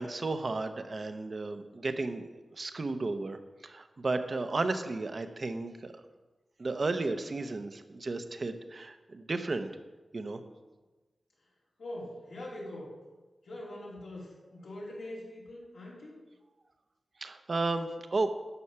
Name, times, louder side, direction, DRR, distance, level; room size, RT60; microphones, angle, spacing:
voice 1, 0.0-3.4 3.6-5.9 6.6-9.7 10.1-10.4 17.2-18.3, right 3 dB, 45° right, 8 dB, 0.8 m, -33 dB
voice 2, 11.8-12.9 13.4-16.2, left 1 dB, 90° left, -5 dB, 3.7 m, -43 dB
11.0 x 7.2 x 5.6 m, 1.2 s
wide cardioid pair, 120°, 0 cm